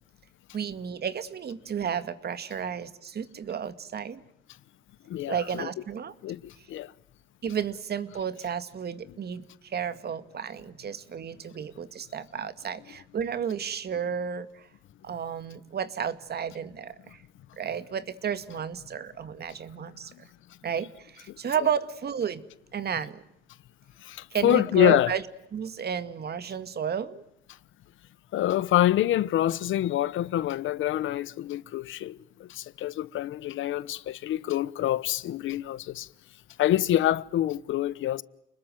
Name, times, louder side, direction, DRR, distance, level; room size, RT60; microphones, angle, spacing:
voice 1, 0.5-4.2 5.3-6.1 7.4-14.7 15.0-17.2 17.6-20.3 20.6-22.4 22.7-23.2 24.3-27.2, right 7 dB, 55° right, 2.2 m, -32 dB
voice 2, 5.1-5.7 6.2-6.9 24.0-25.1 28.3-36.1 36.6-38.2, left 13 dB, 80° left, 1.1 m, -26 dB
29.5 x 21.0 x 9.3 m
cardioid pair, 90°, 20 cm